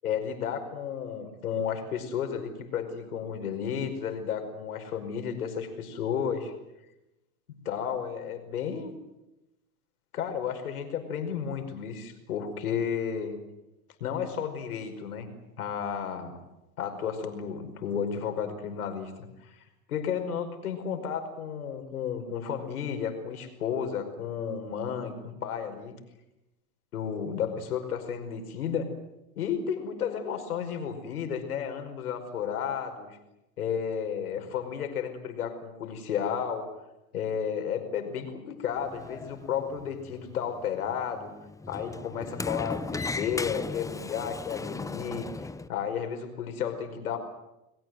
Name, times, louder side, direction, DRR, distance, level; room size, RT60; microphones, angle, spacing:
voice 1, 0.0-6.5 7.7-8.9 10.1-13.3 14.0-15.3 15.6-16.4 16.8-19.1 19.4-19.6 19.9-26.0 26.9-28.9 29.4-33.2 33.6-36.7 37.1-41.3 41.7-47.2, left 7 dB, 85° left, 6 dB, 5.3 m, -32 dB
Sliding door, 38.6-45.7, left 3 dB, 10° left, 0.8 m, -37 dB
30.0 x 19.5 x 7.9 m, 0.91 s
hypercardioid pair, 105°, 43 cm